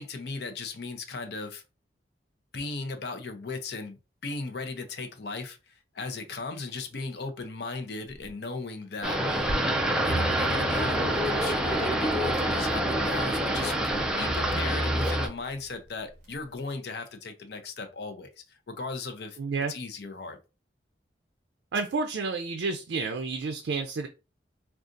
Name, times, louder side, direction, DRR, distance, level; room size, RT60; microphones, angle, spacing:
voice 1, 0.0-1.6 2.5-9.5 10.0-19.4 19.7-20.4, left 3 dB, 65° left, 0.6 m, -37 dB
sound 1, 8.0-8.3 9.3-9.6 10.7-11.0 13.7-16.6, equal, 40° right, 1.2 m, -42 dB
sound 2, 9.0-15.3, right 1 dB, 5° right, 0.4 m, -26 dB
sound 3, 10.1-15.9 16.1-16.2, right 3 dB, 40° left, 1.3 m, -40 dB
voice 2, 19.4-19.7 21.7-24.1, right 4 dB, 85° right, 0.4 m, -30 dB
3.7 x 2.4 x 2.5 m
head